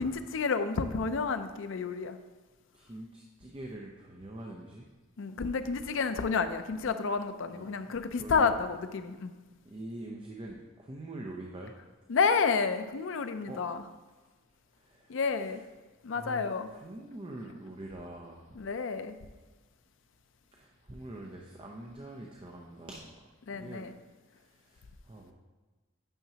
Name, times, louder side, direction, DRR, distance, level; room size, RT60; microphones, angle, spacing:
voice 1, 0.0-2.2 5.2-9.3 12.1-13.8 15.1-15.6 16.0-16.7 18.6-19.2 23.5-23.9, left 5 dB, 70° left, 10 dB, 0.4 m, -30 dB
voice 2, 2.7-4.9 7.5-7.7 8.1-8.6 9.6-11.8 13.5-13.6 14.8-15.7 16.1-18.6 20.5-23.2 23.5-23.9 24.3-25.3, right 1 dB, 25° right, 0 dB, 0.6 m, -44 dB
9.0 x 5.9 x 2.8 m, 1.2 s
head